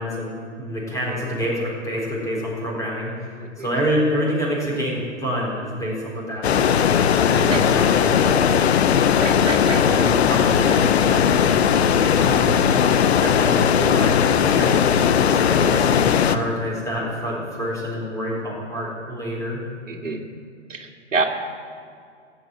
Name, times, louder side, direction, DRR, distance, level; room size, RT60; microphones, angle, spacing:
voice 1, 0.0-6.9 7.3-8.6 9.7-11.3 12.2-12.6 13.2-19.6, equal, 10° left, -3 dB, 4.3 m, -27 dB
sound 1, 6.4-16.4, left 8 dB, 60° left, 0.9 m, -18 dB
voice 2, 9.2-9.8 19.9-20.2 20.7-21.3, right 4 dB, 85° right, 2 dB, 2.2 m, -27 dB
15.0 x 8.4 x 9.2 m, 2.3 s
hypercardioid pair, 130°, 37 cm